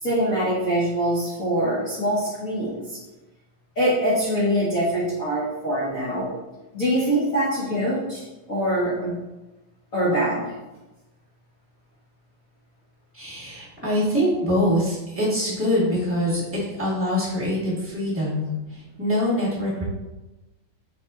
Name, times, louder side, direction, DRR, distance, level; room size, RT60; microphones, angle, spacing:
voice 1, 0.0-3.0 3.7-6.3 6.7-9.1 9.9-10.6, right 1 dB, 60° left, -10 dB, 0.8 m, -24 dB
voice 2, 13.1-19.8, equal, 10° right, -8 dB, 0.7 m, -24 dB
6.0 x 4.1 x 3.7 m, 1.1 s
omnidirectional pair, 4.0 m